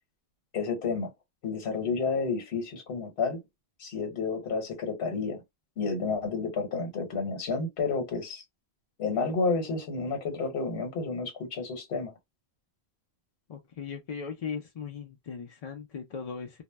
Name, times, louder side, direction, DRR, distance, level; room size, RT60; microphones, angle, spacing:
voice 1, 0.5-1.1 1.4-3.4 3.8-5.4 5.8-8.4 9.0-12.1, left 4 dB, 75° left, 1.1 m, -30 dB
voice 2, 13.5-16.5, left 6 dB, 55° left, 0.4 m, -38 dB
2.1 x 2.0 x 3.2 m
omnidirectional pair, 1.1 m